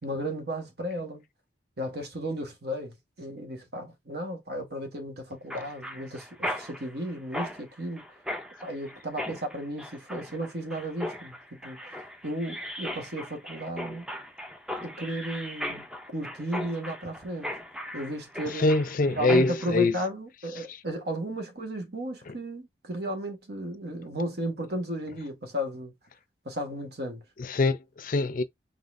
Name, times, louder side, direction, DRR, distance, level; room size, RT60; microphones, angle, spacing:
voice 1, 0.0-1.2 1.8-8.0 8.6-12.0 12.2-14.1 14.8-17.5 17.9-18.7 19.1-25.9 26.4-27.2, right 1 dB, 60° right, 1.4 m, -34 dB
Mechanisms, 5.5-19.7, left 1 dB, 5° right, 0.5 m, -38 dB
voice 2, 18.5-19.9 20.6-20.7 22.3-22.4 27.4-28.4, left 2 dB, 50° left, 0.5 m, -24 dB
4.0 x 3.7 x 2.5 m
head